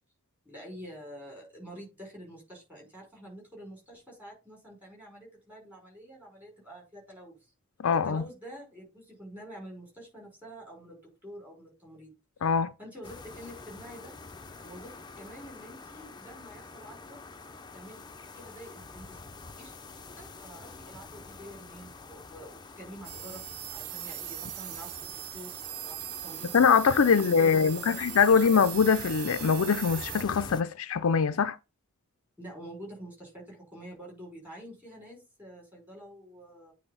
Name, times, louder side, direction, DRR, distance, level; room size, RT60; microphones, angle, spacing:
voice 1, 0.5-7.5 7.9-12.1 12.8-14.1 14.6-17.2 17.7-18.0 18.4-19.2 19.6-19.8 20.2-23.4 23.7-26.6 27.0-28.6 32.4-36.7, equal, 5° right, 5.4 m, -47 dB
voice 2, 7.8-8.2 12.4-12.7 26.5-31.6, left 6 dB, 70° left, 0.5 m, -23 dB
sound 1, 13.0-30.6, left 3 dB, 20° left, 0.6 m, -47 dB
sound 2, 23.0-30.2, right 14 dB, 85° right, 0.6 m, -40 dB
9.0 x 3.4 x 5.5 m
head